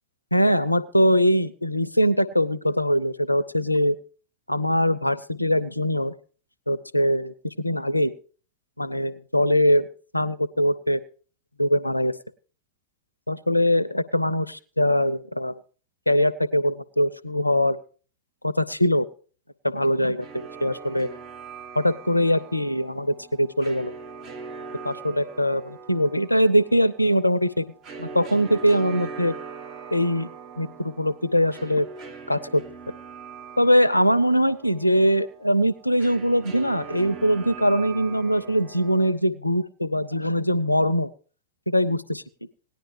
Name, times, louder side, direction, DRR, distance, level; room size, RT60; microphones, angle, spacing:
voice 1, 0.3-4.0 4.5-6.1 6.7-8.1 8.8-9.9 10.1-11.0 11.6-12.1 13.3-15.6 16.1-17.8 18.4-19.1 19.6-21.1 21.8-23.9 24.8-27.6 28.0-29.3 29.9-30.3 30.6-31.9 32.3-32.6 33.6-41.1 41.7-42.2, equal, 85° left, 18 dB, 0.5 m, -22 dB
sound 1, 20.2-39.1, right 5 dB, 35° right, 1.2 m, -41 dB
18.0 x 10.5 x 3.2 m, 0.39 s
figure-of-eight pair, 90°, 0 cm